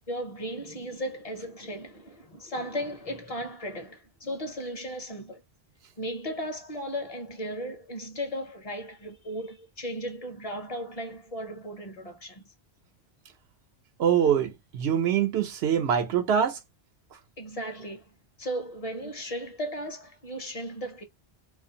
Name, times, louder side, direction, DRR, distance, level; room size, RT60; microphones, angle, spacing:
voice 1, 0.1-5.4 6.0-12.5 17.4-18.1 18.4-21.0, equal, 40° left, 0.6 m, -36 dB
voice 2, 14.0-16.6, right 8 dB, 80° right, 0.9 m, -24 dB
2.4 x 2.4 x 2.7 m
omnidirectional pair, 1.1 m